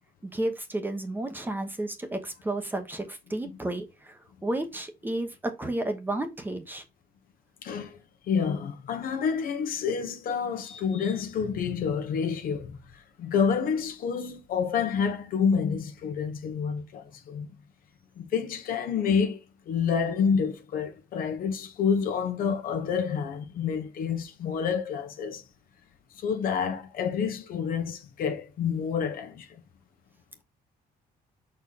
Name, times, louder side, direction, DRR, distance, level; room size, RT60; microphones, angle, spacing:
voice 1, 0.2-6.8, right 1 dB, 10° right, 1.0 m, -32 dB
voice 2, 7.6-8.0 8.3-12.8 13.2-17.5 18.2-19.4 19.7-25.4 26.2-29.5, left 6 dB, 60° left, 1.1 m, -28 dB
6.0 x 4.5 x 4.0 m
cardioid pair, 160°, 16 cm